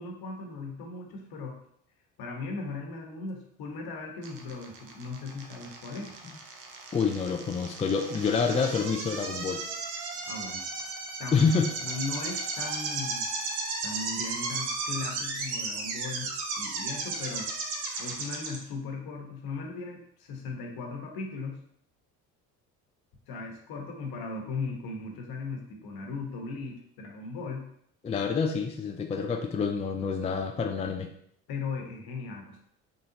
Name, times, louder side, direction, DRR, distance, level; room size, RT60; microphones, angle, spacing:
voice 1, 0.0-1.5 2.2-6.2 10.2-10.6 11.2-11.4 11.8-13.3 13.8-16.3 16.6-17.5 18.0-21.6 23.3-27.6 31.5-32.6, left 3 dB, 65° left, 2 dB, 1.2 m, -37 dB
sound 1, 4.2-18.6, right 3 dB, 70° right, 0.9 m, -35 dB
voice 2, 6.9-9.6 11.3-11.7 28.0-31.1, left 5 dB, 15° left, 4 dB, 0.4 m, -27 dB
3.8 x 3.6 x 2.8 m, 0.69 s
supercardioid pair, 75°, 40 cm